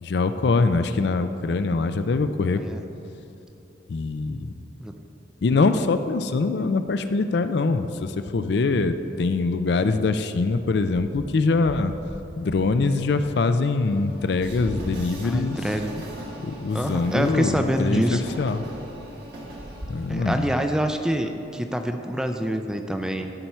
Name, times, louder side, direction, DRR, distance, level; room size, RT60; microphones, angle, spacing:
voice 1, 0.0-2.6 3.9-4.5 5.4-11.9 12.4-15.6 16.4-18.6 19.9-20.5, left 3 dB, 60° left, 10 dB, 0.4 m, -23 dB
Train, 11.0-21.4, right 1 dB, 60° right, 1.6 m, -39 dB
voice 2, 15.2-15.9 16.7-18.2 20.1-23.3, equal, 5° right, 6 dB, 0.4 m, -26 dB
13.0 x 4.6 x 5.6 m, 2.9 s
head